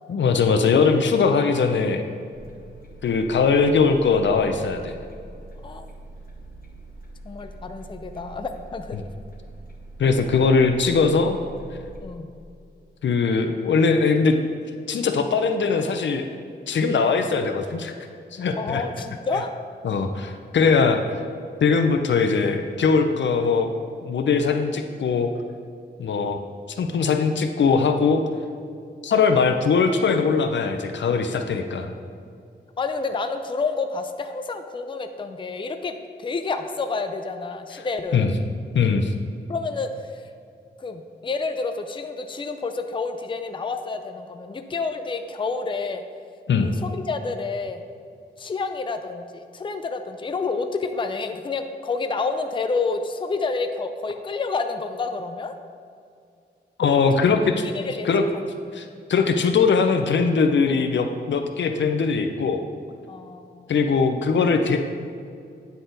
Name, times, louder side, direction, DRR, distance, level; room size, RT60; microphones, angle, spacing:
voice 1, 0.1-2.0 3.0-5.0 10.0-11.4 13.0-14.4 14.9-16.3 16.7-17.9 18.3-18.8 19.8-21.2 21.6-23.7 24.0-25.3 26.0-26.4 26.8-28.2 29.0-31.9 38.1-38.3 38.7-39.1 46.5-46.7 56.8-57.5 58.0-58.2 58.7-62.6 63.7-64.8, left 5 dB, 75° left, 6 dB, 0.5 m, -21 dB
sound 1, 2.3-12.0, right 2 dB, 50° left, 1.0 m, -43 dB
voice 2, 7.2-9.0 12.0-12.3 18.6-19.5 32.8-38.4 39.5-40.2 40.8-46.0 46.6-47.8 48.4-55.5 57.7-58.1 63.1-63.7, left 4 dB, 25° left, 7 dB, 0.4 m, -29 dB
9.3 x 4.2 x 3.9 m, 2.3 s
wide cardioid pair, 80°, 19 cm